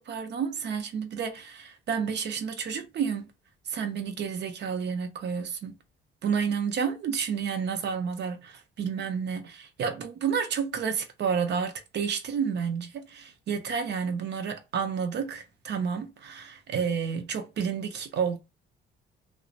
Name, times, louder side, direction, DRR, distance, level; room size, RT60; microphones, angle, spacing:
voice 1, 0.0-3.3 3.7-5.8 6.2-18.4, right 6 dB, 60° right, 0.6 m, -30 dB
2.8 x 2.1 x 2.4 m
cardioid pair, 90°, 20 cm